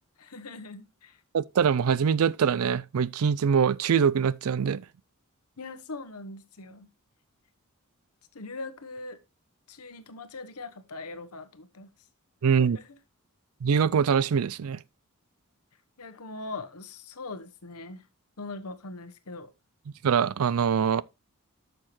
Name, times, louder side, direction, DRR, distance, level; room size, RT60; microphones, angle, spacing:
voice 1, 0.2-1.2 5.6-6.9 8.3-9.2 9.7-11.9 12.5-13.0 16.0-18.0 18.4-19.5, left 3 dB, 85° left, 1.1 m, -41 dB
voice 2, 1.3-4.8 12.4-12.8 13.6-14.8 20.0-21.0, right 7 dB, 75° right, 0.4 m, -23 dB
10.0 x 6.6 x 3.1 m
head